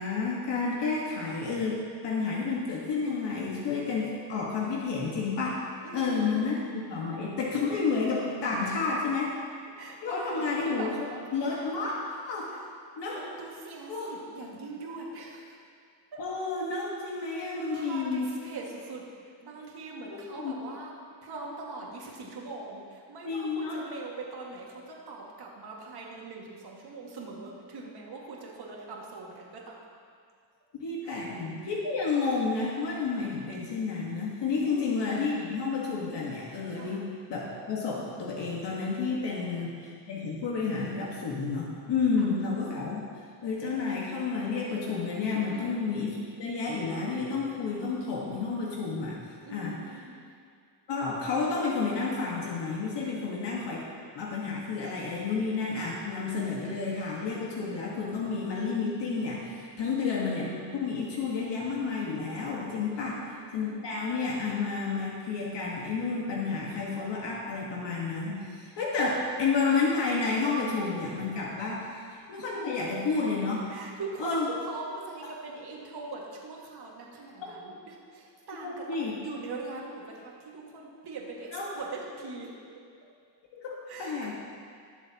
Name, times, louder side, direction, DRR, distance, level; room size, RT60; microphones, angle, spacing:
voice 1, 0.0-5.6 5.9-9.4 10.0-10.9 11.3-11.9 12.2-12.5 13.0-13.2 13.9-14.1 16.2-18.3 20.1-20.5 23.3-23.8 30.8-43.0 43.4-49.2 49.5-49.7 50.9-53.8 54.2-63.2 63.5-71.9 72.3-73.7 74.2-74.4 78.6-79.1 81.5-81.7 83.5-84.3, left 4 dB, 75° left, -4 dB, 1.7 m, -30 dB
voice 2, 5.8-6.4 8.6-8.9 9.8-10.9 12.1-12.2 12.5-12.8 13.2-15.6 16.1-16.3 17.3-20.9 21.2-29.8 31.0-31.2 34.6-35.0 36.7-37.0 39.3-39.7 42.2-42.4 45.4-45.8 49.4-50.3 53.1-53.4 59.8-60.2 62.9-64.1 71.9-72.0 73.7-82.5 83.9-84.3, right 3 dB, 65° right, -2 dB, 2.1 m, -42 dB
19.0 x 7.4 x 3.0 m, 2.2 s
cardioid pair, 120°, 42 cm